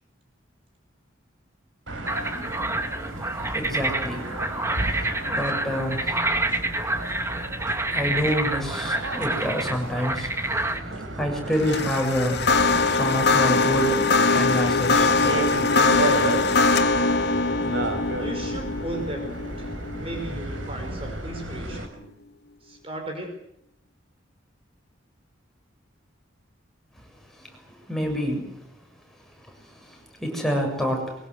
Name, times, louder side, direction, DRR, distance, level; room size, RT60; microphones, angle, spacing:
sound 1, 1.9-21.9, right 2 dB, 80° right, 4.6 m, -33 dB
sound 2, 2.1-10.8, right 2 dB, 15° right, 2.2 m, -28 dB
voice 1, 3.5-4.3 5.3-6.4 7.9-10.3 11.2-12.5 12.9-15.5 27.9-28.5 29.9-31.2, equal, ahead, 1 dB, 7.2 m, -27 dB
sound 3, 11.6-20.9, left 3 dB, 60° left, 2.1 m, -22 dB
voice 2, 18.2-22.1 22.6-23.3, right 1 dB, 30° right, 4 dB, 5.1 m, -36 dB
23.5 x 23.0 x 8.2 m, 0.76 s
head